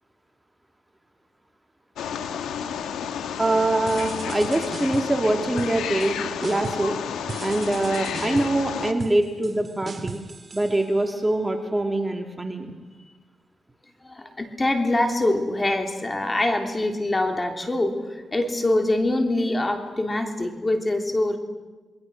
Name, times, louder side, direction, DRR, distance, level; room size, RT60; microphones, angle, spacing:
Wild animals, 2.0-8.9, left 8 dB, 90° left, 1.5 m, -31 dB
voice 1, 3.4-7.0 7.4-10.2 10.5-12.8, right 2 dB, 20° right, 4 dB, 2.1 m, -24 dB
sound 1, 3.9-5.2 5.6-6.1 6.4-6.9 7.3-11.3, right 4 dB, 35° right, 2.7 m, -38 dB
voice 2, 14.0-18.0 18.3-21.4, left 1 dB, 25° left, 4 dB, 3.3 m, -24 dB
28.5 x 21.5 x 6.4 m, 1.2 s
cardioid pair, 70°, 0 cm